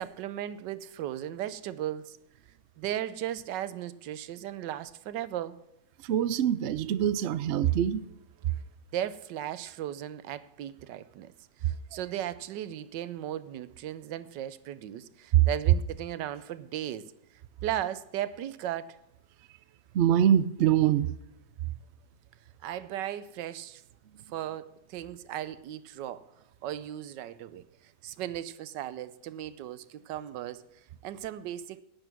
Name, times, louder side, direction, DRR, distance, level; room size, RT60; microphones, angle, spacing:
voice 1, 0.0-2.2 2.8-5.6 8.9-11.3 11.6-17.1 17.6-19.0 22.6-23.8 24.3-26.2 26.6-27.6 28.0-30.6 31.0-31.8, right 11 dB, 90° right, 1.4 m, -36 dB
voice 2, 6.0-8.0 15.3-15.4 19.9-21.1, right 10 dB, 70° right, 0.6 m, -24 dB
12.0 x 9.0 x 6.0 m
omnidirectional pair, 1.9 m